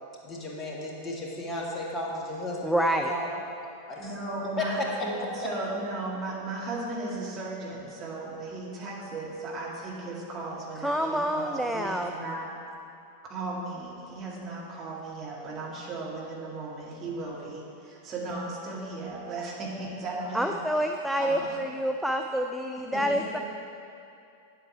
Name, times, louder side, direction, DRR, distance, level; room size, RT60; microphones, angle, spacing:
voice 1, 0.2-3.3 3.9-4.1 4.6-5.1 5.4-5.5, left 2 dB, 20° left, -3 dB, 1.7 m, -33 dB
voice 2, 2.6-3.1 10.8-12.1 20.3-23.4, equal, ahead, 3 dB, 0.4 m, -27 dB
voice 3, 4.0-12.5 13.2-20.9 21.2-21.6 22.9-23.4, right 2 dB, 30° right, -4 dB, 2.1 m, -36 dB
9.7 x 7.8 x 4.6 m, 2.6 s
figure-of-eight pair, 90°, 0 cm